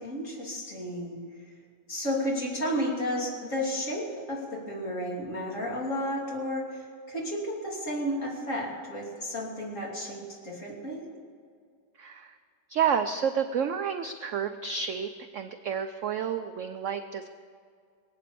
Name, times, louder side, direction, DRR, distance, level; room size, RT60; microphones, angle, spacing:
voice 1, 0.0-1.5 1.9-11.0, equal, 45° left, -3 dB, 3.4 m, -32 dB
voice 2, 12.0-12.4 12.7-17.3, right 7 dB, 70° right, 8 dB, 0.7 m, -30 dB
21.0 x 8.6 x 6.9 m, 2.2 s
omnidirectional pair, 1.9 m